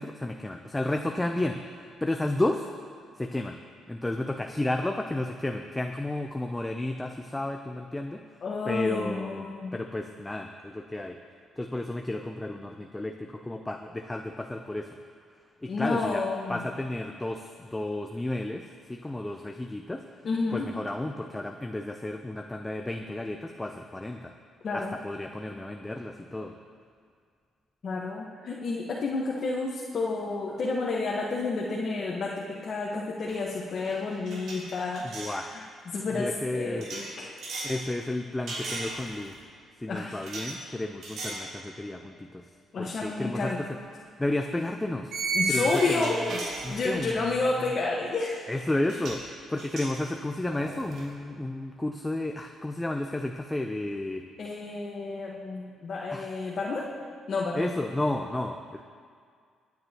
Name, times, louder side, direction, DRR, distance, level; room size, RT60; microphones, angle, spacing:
voice 1, 0.0-2.7 3.2-3.6 3.9-8.2 8.6-11.2 11.6-15.0 15.6-20.0 20.5-24.3 24.7-26.5 35.0-35.6 36.1-36.9 37.6-39.4 39.8-42.4 42.8-45.2 45.5-46.4 46.6-47.6 48.5-54.2 56.1-56.3 57.5-58.8, left 1 dB, 15° left, 4 dB, 0.6 m, -32 dB
voice 2, 8.4-9.8 15.7-16.6 20.2-20.7 24.6-25.0 27.8-37.3 39.9-40.2 42.7-43.6 45.3-46.4 46.7-48.4 54.4-56.9 57.3-57.6, left 3 dB, 50° left, -4 dB, 1.4 m, -30 dB
sound 1, 33.3-33.5 33.8-35.4 36.8-37.8 38.5-39.3 40.2-40.6 41.0-41.5 41.9-42.1 43.6-43.7 45.1-47.2 48.5-48.6 48.9-49.3 49.6-51.1, right 2 dB, 75° right, 3.2 m, -34 dB
22.0 x 9.5 x 3.0 m, 2.1 s
cardioid pair, 90°, 0 cm